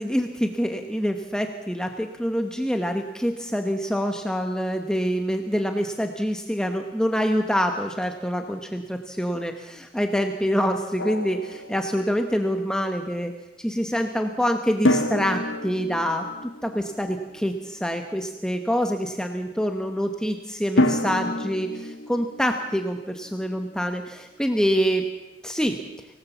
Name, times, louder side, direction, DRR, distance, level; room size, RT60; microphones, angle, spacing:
voice 1, 0.0-13.3 13.6-25.1 25.4-25.8, equal, 5° left, 5 dB, 1.1 m, -26 dB
Drum, 11.0-12.4 14.8-17.8 20.8-23.6, left 1 dB, 80° left, 1.6 m, -28 dB
25.0 x 18.0 x 7.2 m, 1.1 s
head